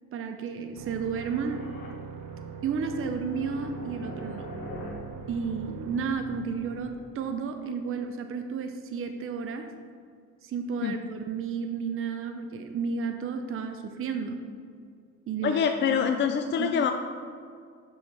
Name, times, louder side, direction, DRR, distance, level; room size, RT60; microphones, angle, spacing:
voice 1, 0.1-1.6 2.6-4.5 5.3-9.7 10.4-14.4 15.3-15.6 15.9-16.1 16.6-16.8, right 5 dB, 45° right, 6 dB, 0.6 m, -32 dB
sound 1, 0.7-6.1, right 7 dB, 85° right, 0.6 m, -42 dB
sound 2, 1.1-7.0, left 1 dB, 80° left, 1.6 m, -44 dB
voice 2, 15.4-16.9, left 7 dB, 40° left, 6 dB, 0.4 m, -25 dB
6.1 x 5.6 x 4.5 m, 2.2 s
cardioid pair, 90°, 30 cm